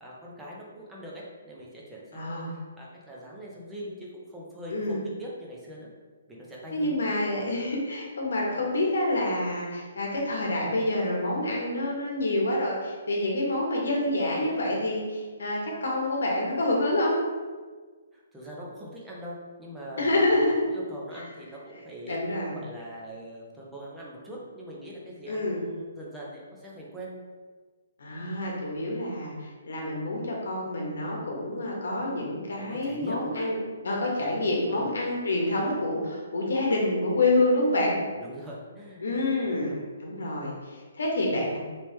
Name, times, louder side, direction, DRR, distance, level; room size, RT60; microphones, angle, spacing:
voice 1, 0.0-5.9 6.3-6.9 18.1-22.2 22.5-27.1 32.6-33.5 34.7-34.9 38.2-39.8, equal, 5° right, -5 dB, 0.5 m, -42 dB
voice 2, 2.1-2.5 4.7-5.0 6.7-17.2 20.0-20.6 22.0-22.6 25.3-25.6 28.0-33.6 33.8-38.0 39.0-41.6, left 1 dB, 80° left, -2 dB, 0.9 m, -27 dB
3.1 x 3.0 x 3.1 m, 1.4 s
hypercardioid pair, 170°, 0 cm